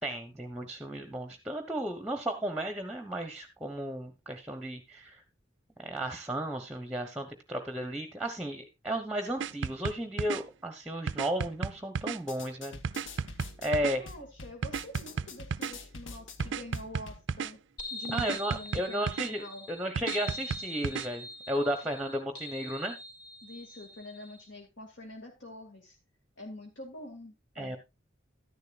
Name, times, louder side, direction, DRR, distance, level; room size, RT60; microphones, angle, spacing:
voice 1, 0.0-5.2 5.8-12.8 13.6-14.0 18.1-23.0 27.6-27.8, right 1 dB, 5° right, 7 dB, 1.0 m, -34 dB
sound 1, 9.4-10.4 11.1-12.2 12.8-14.0 14.6-15.7 16.4-17.5 18.2-19.3 20.0-21.1, right 6 dB, 70° right, 0.4 m, -33 dB
sound 2, 12.2-17.2, left 3 dB, 80° left, 1.3 m, -46 dB
voice 2, 13.9-17.6 17.9-19.7 23.4-26.0 26.4-27.8, left 1 dB, 65° left, 2 dB, 2.0 m, -46 dB
sound 3, 17.8-24.4, left 1 dB, 45° left, 3.4 m, -43 dB
12.5 x 10.5 x 2.4 m, 0.23 s
head